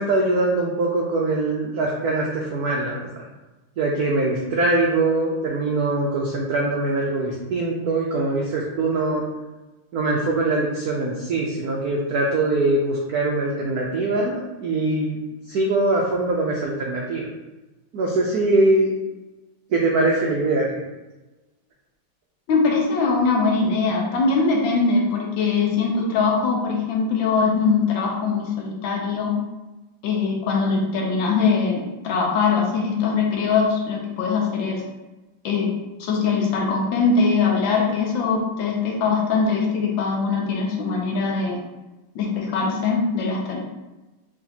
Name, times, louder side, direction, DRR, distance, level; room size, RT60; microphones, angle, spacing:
voice 1, 0.0-3.1 3.8-9.2 9.9-15.2 15.5-17.3 17.9-18.9 19.7-20.8, right 2 dB, 85° right, -2 dB, 0.8 m, -22 dB
voice 2, 22.5-29.3 30.0-34.8 35.4-35.7 36.0-41.6 42.1-43.6, left 4 dB, 70° left, 0 dB, 1.3 m, -22 dB
4.9 x 3.2 x 2.7 m, 1.1 s
omnidirectional pair, 2.4 m